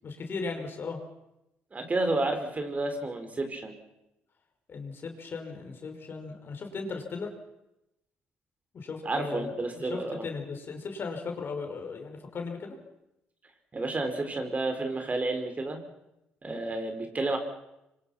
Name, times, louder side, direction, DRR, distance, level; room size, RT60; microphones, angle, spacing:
voice 1, 0.0-1.0 4.7-7.3 8.7-12.8, left 4 dB, 55° left, 3 dB, 5.7 m, -37 dB
voice 2, 1.7-3.8 9.0-10.2 13.7-15.8 16.4-17.4, right 2 dB, 35° right, 5 dB, 5.4 m, -30 dB
26.0 x 24.5 x 6.0 m, 0.88 s
supercardioid pair, 55°, 5 cm